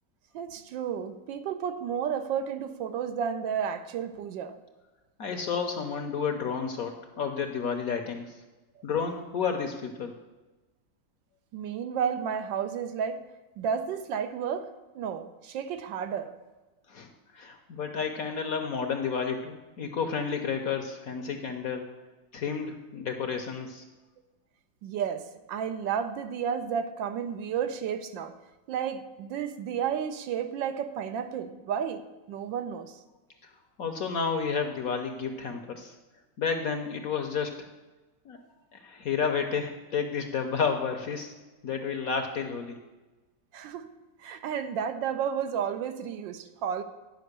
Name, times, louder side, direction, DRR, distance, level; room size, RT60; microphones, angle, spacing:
voice 1, 0.3-4.6 8.8-8.9 11.5-13.2 13.6-14.7 14.9-16.3 24.8-28.4 28.7-32.0 32.3-33.0 43.5-43.9 44.2-46.8, right 7 dB, 80° right, 9 dB, 1.3 m, -32 dB
voice 2, 5.2-8.4 8.8-10.1 16.9-17.1 17.3-21.9 22.3-23.8 33.8-35.9 36.4-37.5 38.2-38.4 38.7-41.3 41.6-42.8, left 6 dB, 60° left, 5 dB, 1.0 m, -31 dB
10.5 x 5.2 x 6.6 m, 1.2 s
omnidirectional pair, 2.1 m